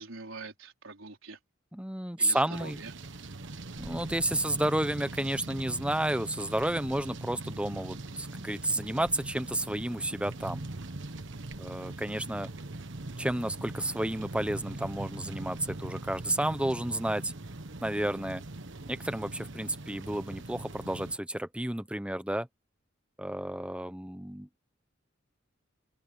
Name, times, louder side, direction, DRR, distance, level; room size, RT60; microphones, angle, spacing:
voice 1, 0.0-1.4 2.2-2.9, right 4 dB, 85° right, 4.2 m, -44 dB
voice 2, 1.7-2.8 3.8-10.7 11.6-12.5 13.2-17.3 17.8-18.4 18.9-22.5 23.2-24.5, right 1 dB, 5° right, 1.0 m, -31 dB
sound 1, 2.5-21.2, right 2 dB, 65° right, 1.3 m, -41 dB
open air
head